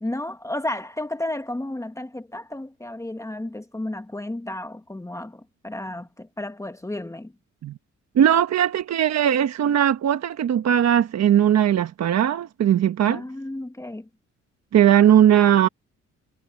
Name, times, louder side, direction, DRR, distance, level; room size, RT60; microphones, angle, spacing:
voice 1, 0.0-7.3 13.0-14.1, left 1 dB, 10° left, 1.5 m, -32 dB
voice 2, 8.1-13.2 14.7-15.7, right 10 dB, 60° right, 1.3 m, -18 dB
cardioid pair, 90°, 30 cm